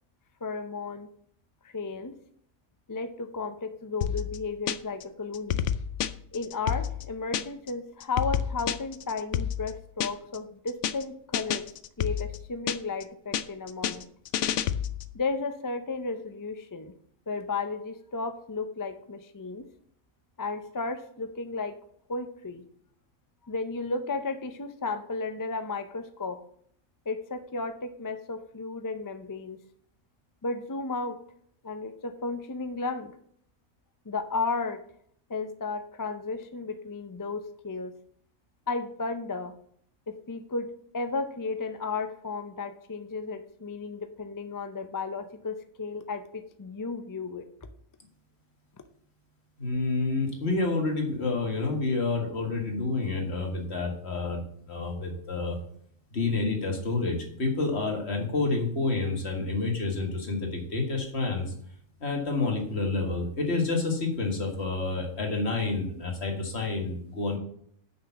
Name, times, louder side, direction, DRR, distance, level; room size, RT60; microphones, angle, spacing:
voice 1, 0.4-1.1 1.7-2.2 2.9-5.6 6.3-11.7 12.0-14.0 15.1-16.9 17.3-19.7 20.4-21.8 22.1-22.6 23.5-26.4 27.1-29.6 30.4-31.2 31.6-33.1 34.1-34.8 35.3-37.9 38.7-39.5 40.1-47.4, left 3 dB, 30° left, 8 dB, 0.4 m, -34 dB
sound 1, 4.0-5.0 5.3-7.7 8.0-10.4 10.7-11.0 11.3-13.0 13.3-15.1, left 9 dB, 75° left, 0.9 m, -30 dB
voice 2, 49.6-55.6 56.1-61.5 62.0-67.4, left 3 dB, 55° left, 2 dB, 2.0 m, -29 dB
6.5 x 5.9 x 7.0 m, 0.65 s
omnidirectional pair, 1.3 m